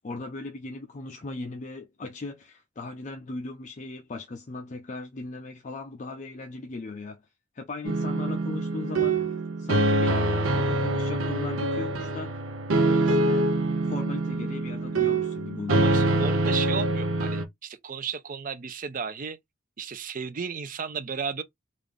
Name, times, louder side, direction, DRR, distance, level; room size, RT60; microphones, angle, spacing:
voice 1, 0.0-7.2 7.5-12.4 12.8-13.5 13.8-16.3, left 3 dB, 35° left, 0.4 m, -38 dB
sound 1, 7.8-17.4, right 2 dB, 80° right, 0.7 m, -25 dB
voice 2, 15.7-19.4 19.8-21.4, right 6 dB, 40° right, 0.5 m, -34 dB
3.3 x 2.5 x 3.6 m
head